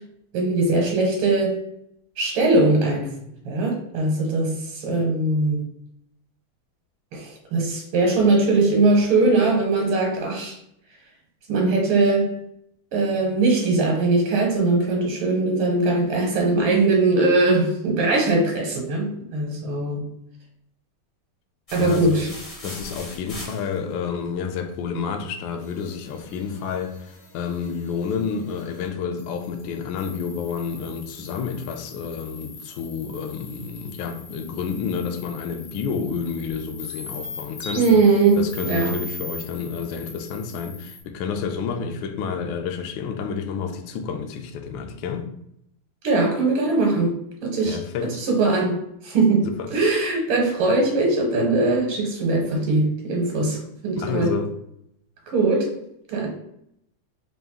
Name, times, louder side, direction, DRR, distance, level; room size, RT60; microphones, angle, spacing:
voice 1, 0.3-1.6 2.2-3.1 3.5-5.6 7.1-10.6 11.5-12.3 12.9-20.0 21.7-22.3 37.7-38.9 46.0-47.1 47.4-47.8 48.1-53.6 53.8-54.3 55.3-55.7 56.1-56.3, right 3 dB, 85° right, 1.8 m, -20 dB
sound 1, 21.7-24.1, left 1 dB, 25° left, 0.7 m, -38 dB
voice 2, 21.8-22.3 22.6-38.0 38.3-45.3 47.6-48.2 49.6-49.7 54.0-54.5, left 6 dB, 75° left, 1.2 m, -30 dB
sound 2, 25.6-28.9 29.2-41.0, left 3 dB, 55° left, 1.4 m, -41 dB
3.8 x 2.6 x 3.5 m
omnidirectional pair, 2.3 m